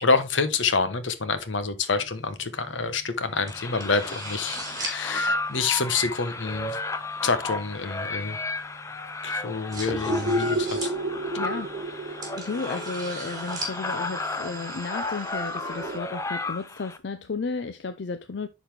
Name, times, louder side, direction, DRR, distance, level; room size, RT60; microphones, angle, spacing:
voice 1, 0.0-6.8 7.2-8.4 9.2-10.9, left 4 dB, 90° left, 1.0 m, -27 dB
sound 1, 2.0-14.8, right 1 dB, 20° right, 2.4 m, -41 dB
sound 2, 3.4-17.0, left 2 dB, 15° left, 0.5 m, -33 dB
sound 3, 10.0-16.0, right 1 dB, 45° right, 0.6 m, -32 dB
voice 2, 11.4-18.5, left 4 dB, 70° left, 0.5 m, -34 dB
10.5 x 4.1 x 3.3 m
head